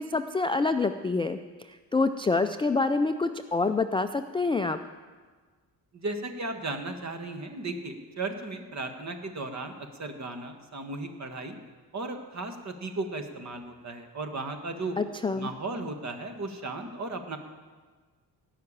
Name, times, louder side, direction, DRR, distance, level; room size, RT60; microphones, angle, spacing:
voice 1, 0.0-1.4 1.7-4.8 15.0-15.5, left 3 dB, 15° left, 8 dB, 0.3 m, -27 dB
voice 2, 5.9-11.6 11.9-15.0 15.3-17.4, right 2 dB, 40° right, 6 dB, 1.6 m, -35 dB
17.5 x 5.8 x 8.7 m, 1.4 s
cardioid pair, 110°, 42 cm